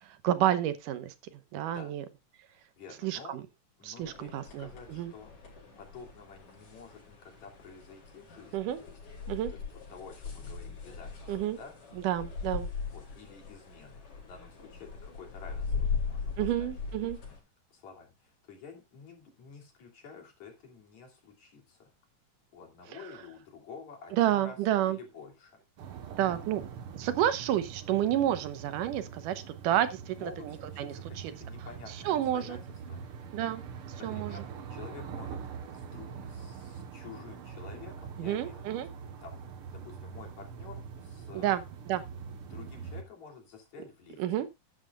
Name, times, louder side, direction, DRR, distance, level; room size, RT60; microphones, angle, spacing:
voice 1, 0.0-1.1 1.5-2.1 3.0-3.4 3.8-5.1 8.5-8.8 9.3-9.5 11.3-11.6 12.0-12.7 16.4-17.2 22.9-23.0 24.1-25.0 26.2-31.3 32.1-32.6 33.3-33.6 34.0-34.4 38.2-38.9 41.3-42.0 44.2-44.5, right 12 dB, 90° right, 2.6 m, -30 dB
voice 2, 2.5-3.4 3.8-5.3 5.8-9.0 9.5-11.7 12.9-17.3 17.7-21.9 22.5-24.6 24.8-25.6 30.2-32.6 32.9-33.0 33.9-34.4 34.7-35.4 35.7-38.7 39.2-39.4 39.7-41.7 42.5-44.2, left 5 dB, 60° left, 4.3 m, -50 dB
sound 1, 4.0-17.4, left 5 dB, 80° left, 6.2 m, -39 dB
sound 2, 25.8-43.0, right 6 dB, 55° right, 1.7 m, -43 dB
13.0 x 10.5 x 2.4 m
omnidirectional pair, 3.7 m